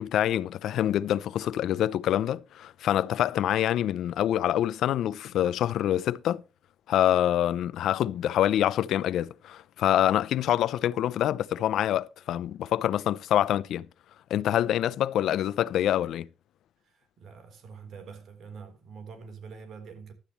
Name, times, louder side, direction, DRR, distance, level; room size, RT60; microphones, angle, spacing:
voice 1, 0.0-6.4 6.9-13.9 14.3-16.3, left 11 dB, 80° left, 0.7 m, -26 dB
voice 2, 16.8-20.1, right 5 dB, 65° right, 4.2 m, -45 dB
15.5 x 12.0 x 3.2 m
cardioid pair, 90°, 0 cm